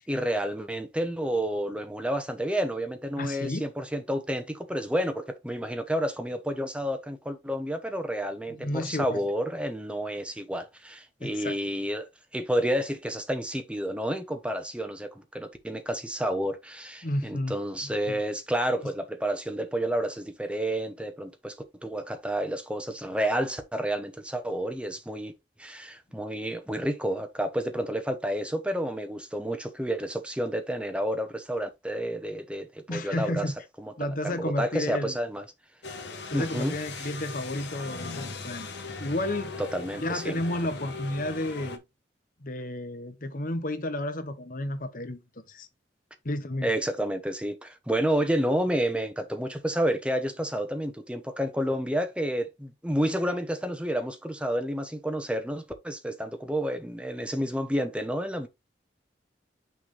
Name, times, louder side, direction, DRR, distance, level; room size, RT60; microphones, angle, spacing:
voice 1, 0.0-21.6 21.8-25.3 25.6-33.9 34.2-35.4 36.3-37.1 39.7-40.4 46.6-58.5, equal, 5° right, 1.1 m, -30 dB
voice 2, 3.2-3.7 8.5-9.2 11.2-11.6 17.0-17.5 18.1-18.2 32.9-33.5 34.0-35.2 36.3-38.7 39.0-39.5 40.0-41.8 42.4-45.7 46.2-46.7, left 1 dB, 50° left, 1.2 m, -32 dB
sound 1, 35.8-41.8, left 3 dB, 70° left, 1.5 m, -39 dB
6.2 x 3.6 x 4.9 m
head